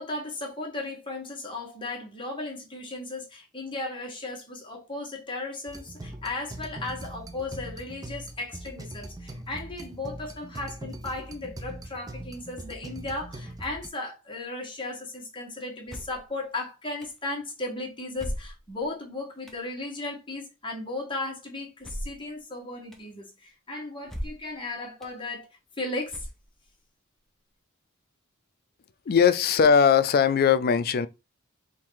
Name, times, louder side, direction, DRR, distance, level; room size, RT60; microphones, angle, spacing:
voice 1, 0.0-25.5 25.8-26.3, left 2 dB, 25° left, 1.4 m, -36 dB
sound 1, 5.7-13.9, right 1 dB, 15° right, 0.5 m, -41 dB
sound 2, 15.9-16.3 17.0-17.1 18.2-18.8 19.5-19.6 21.8-22.3 22.9-23.0 24.0-24.5 25.0-25.1 26.1-26.6, equal, ahead, 0.8 m, -37 dB
voice 2, 29.1-31.1, left 6 dB, 45° left, 0.4 m, -20 dB
3.7 x 2.6 x 4.6 m
head